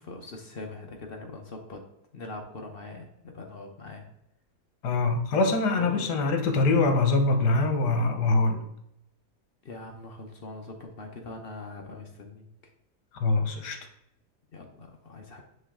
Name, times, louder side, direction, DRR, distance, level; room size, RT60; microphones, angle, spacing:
voice 1, 0.0-1.8 2.1-4.1 5.8-6.0 9.6-12.5 14.5-15.4, left 3 dB, 50° left, 3 dB, 0.7 m, -41 dB
voice 2, 4.8-8.6 13.2-13.8, left 3 dB, 80° left, 5 dB, 1.5 m, -24 dB
9.6 x 3.3 x 3.6 m, 0.80 s
omnidirectional pair, 1.7 m